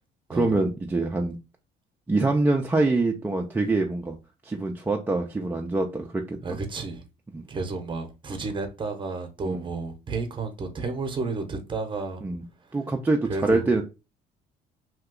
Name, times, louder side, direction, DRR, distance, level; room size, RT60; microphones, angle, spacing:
voice 1, 0.3-1.4 2.1-4.2 4.4-6.4 7.3-7.5 9.4-9.6 12.2-12.4 12.7-13.8, right 2 dB, 10° right, 0.4 m, -25 dB
voice 2, 6.4-7.0 7.5-12.3 13.3-13.7, right 3 dB, 30° right, 0.8 m, -32 dB
2.8 x 2.2 x 3.6 m
cardioid pair, 110°, 17 cm